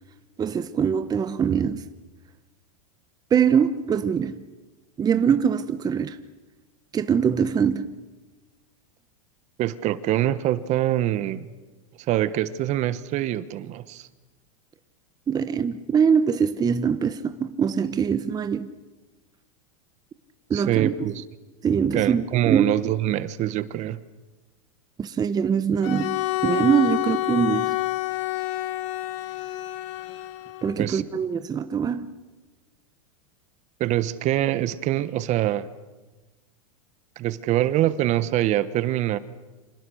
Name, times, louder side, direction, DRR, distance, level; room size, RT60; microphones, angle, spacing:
voice 1, 0.4-1.9 3.3-4.5 5.0-6.2 6.9-8.0 15.3-18.7 20.5-20.9 21.6-22.7 25.0-27.8 30.6-32.1, right 7 dB, 20° right, 1.1 m, -23 dB
voice 2, 9.6-11.5 12.1-14.1 20.5-21.2 21.9-24.0 30.8-31.0 33.8-35.7 37.2-39.2, right 13 dB, 40° right, 1.2 m, -24 dB
Bowed string instrument, 25.8-30.8, left 17 dB, 60° left, 1.8 m, -28 dB
29.0 x 26.5 x 6.4 m
hypercardioid pair, 120°, 18 cm